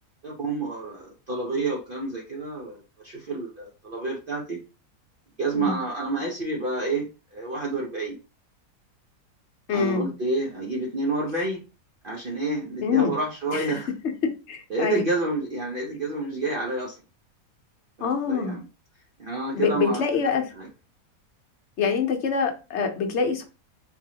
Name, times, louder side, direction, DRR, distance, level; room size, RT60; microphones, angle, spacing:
voice 1, 0.2-4.6 5.4-8.2 9.7-11.6 12.0-13.9 14.7-17.0 18.0-18.6 19.2-20.0 20.5-20.7, right 2 dB, 45° right, -1 dB, 0.8 m, -29 dB
voice 2, 9.7-10.1 12.8-13.1 13.5-13.7 14.5-15.0 18.0-18.6 19.5-20.4 21.8-23.4, left 6 dB, 55° left, 4 dB, 1.0 m, -25 dB
4.0 x 3.0 x 2.8 m, 0.31 s
omnidirectional pair, 1.5 m